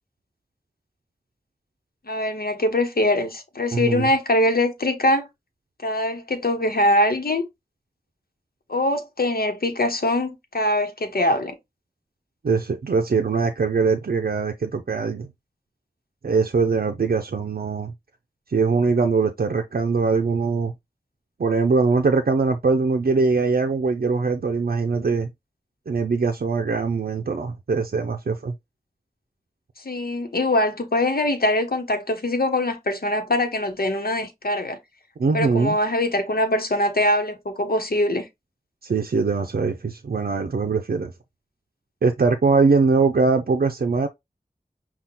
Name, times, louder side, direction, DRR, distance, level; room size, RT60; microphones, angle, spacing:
voice 1, 2.1-5.3 5.8-7.5 8.7-11.5 29.8-34.8 35.3-38.3, left 1 dB, 85° left, 1.0 m, -22 dB
voice 2, 3.7-4.1 12.4-15.3 16.2-17.9 18.5-20.7 21.4-25.3 25.9-28.5 35.2-35.8 38.8-41.1 42.0-44.1, right 4 dB, 90° right, 0.5 m, -22 dB
5.8 x 2.3 x 3.7 m
wide cardioid pair, 45°, 15 cm